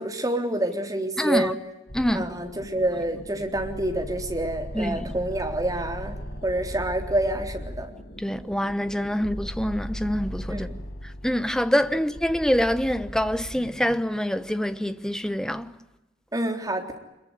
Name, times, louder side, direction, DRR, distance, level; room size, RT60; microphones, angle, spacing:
voice 1, 0.0-1.6 2.1-7.9 10.5-10.7 16.3-17.0, right 1 dB, 20° right, 3.7 m, -28 dB
voice 2, 1.2-1.5 1.9-2.2 4.7-5.2 8.2-10.7 11.2-15.7, equal, 5° left, 1.1 m, -25 dB
sound 1, 1.9-14.0, equal, 60° left, 4.7 m, -38 dB
26.0 x 22.5 x 9.6 m
head